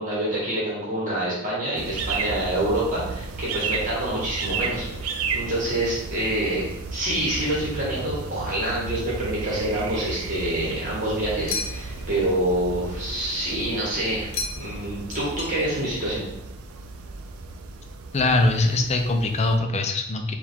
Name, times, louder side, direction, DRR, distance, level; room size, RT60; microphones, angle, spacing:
voice 1, 0.0-14.3 14.6-16.2, right 1 dB, 40° right, -6 dB, 1.2 m, -27 dB
sound 1, 1.7-19.6, right 4 dB, 90° right, 0.4 m, -34 dB
sound 2, 11.5-12.1 14.3-14.8 15.1-15.9, left 4 dB, 70° left, 0.7 m, -33 dB
voice 2, 18.1-20.3, left 2 dB, 30° left, 4 dB, 0.4 m, -22 dB
4.6 x 2.4 x 3.6 m, 0.81 s
head